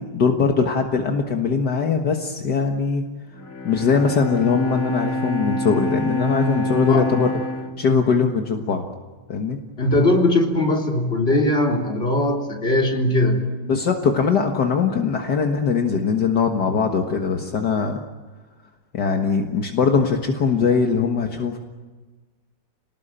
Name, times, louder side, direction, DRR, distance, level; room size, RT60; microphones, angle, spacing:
voice 1, 0.0-3.0 3.6-7.3 7.8-8.9 9.3-9.6 13.7-18.0 18.9-21.6, left 5 dB, 65° left, 3 dB, 2.1 m, -21 dB
Bowed string instrument, 3.3-8.8, left 1 dB, 50° left, 2.5 m, -27 dB
voice 2, 9.8-13.4, left 1 dB, 30° left, 0 dB, 3.9 m, -20 dB
28.5 x 19.5 x 9.0 m, 1.3 s
omnidirectional pair, 2.0 m